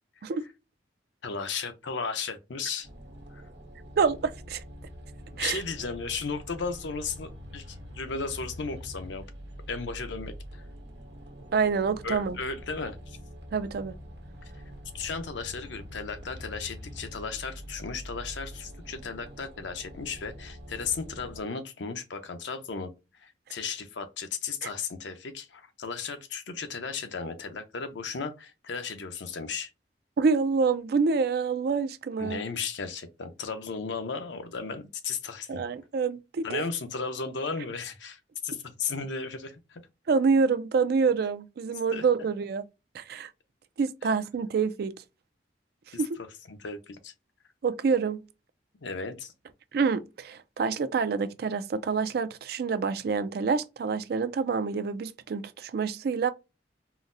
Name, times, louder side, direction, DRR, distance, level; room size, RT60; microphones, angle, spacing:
voice 1, 1.2-2.9 3.3-3.4 5.3-9.3 9.7-10.7 12.0-13.2 14.9-22.9 23.2-29.7 32.2-35.6 36.4-39.8 41.9-42.0 45.9-46.0 46.5-47.1 48.8-49.3, left 5 dB, 85° left, 0.6 m, -35 dB
sound 1, 2.8-21.4, equal, 75° right, 1.1 m, -45 dB
voice 2, 4.0-4.6 5.4-5.6 11.5-12.4 13.5-13.9 24.6-24.7 30.2-32.4 35.5-36.6 40.1-42.6 42.9-43.3 43.8-44.9 45.9-46.2 47.6-48.2 49.7-56.3, right 5 dB, 55° right, 0.3 m, -27 dB
3.8 x 2.0 x 2.6 m
head